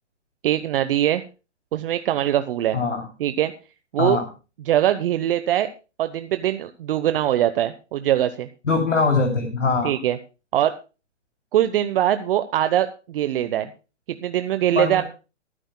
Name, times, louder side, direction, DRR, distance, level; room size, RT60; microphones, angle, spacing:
voice 1, 0.4-1.2 1.7-2.8 3.2-3.5 3.9-4.2 4.7-5.7 6.0-8.5 9.8-10.2 10.5-10.7 11.5-13.7 14.2-15.0, right 12 dB, 50° right, 10 dB, 1.0 m, -22 dB
voice 2, 8.6-9.9 14.7-15.0, left 4 dB, 80° left, 2 dB, 3.1 m, -22 dB
24.5 x 10.0 x 2.2 m, 0.32 s
hypercardioid pair, 130°, 37 cm